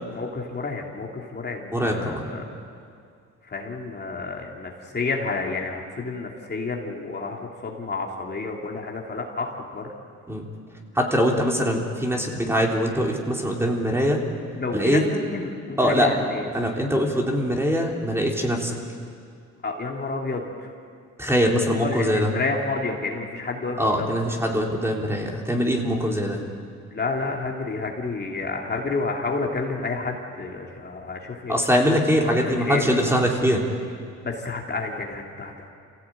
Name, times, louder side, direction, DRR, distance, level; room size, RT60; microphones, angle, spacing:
voice 1, 0.1-2.4 3.5-9.8 14.5-16.5 19.6-20.7 21.8-24.1 26.3-26.5 26.8-31.5 31.9-32.0 32.3-33.0 34.2-35.7, left 3 dB, 35° left, 0 dB, 2.8 m, -30 dB
voice 2, 1.7-2.3 10.3-10.5 10.9-14.2 14.7-15.0 15.8-16.1 16.5-18.8 21.2-22.3 23.8-26.4 31.5-33.6, equal, 10° right, 0 dB, 3.7 m, -22 dB
27.0 x 16.5 x 9.0 m, 2.3 s
cardioid pair, 90°, 30 cm